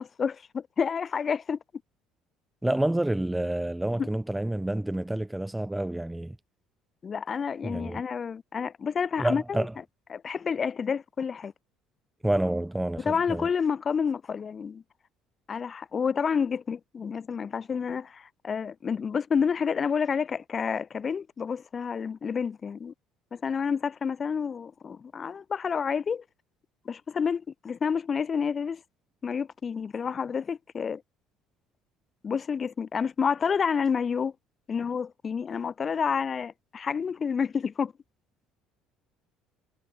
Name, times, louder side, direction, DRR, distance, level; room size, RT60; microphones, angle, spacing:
voice 1, 0.0-1.6 4.0-4.1 7.0-9.6 10.1-11.5 13.0-14.8 15.5-22.9 23.3-26.2 26.9-28.8 29.2-31.0 32.2-34.3 34.7-37.9, left 6 dB, 35° left, 2.5 m, -29 dB
voice 2, 2.6-6.4 7.6-8.0 9.2-9.7 12.2-13.5, right 1 dB, 10° right, 2.5 m, -28 dB
hypercardioid pair, 60°, 0 cm